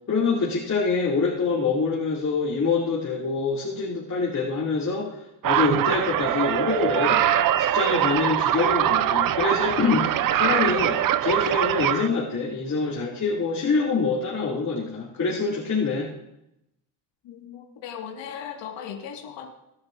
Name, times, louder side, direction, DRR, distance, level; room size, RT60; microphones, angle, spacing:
voice 1, 0.1-7.2 7.6-16.1, left 4 dB, 35° left, -5 dB, 2.5 m, -25 dB
sound 1, 5.4-12.1, right 11 dB, 45° right, 0.6 m, -23 dB
voice 2, 17.2-19.5, left 8 dB, 60° left, 0 dB, 1.9 m, -37 dB
18.5 x 10.5 x 2.6 m, 0.85 s
supercardioid pair, 85°, 49 cm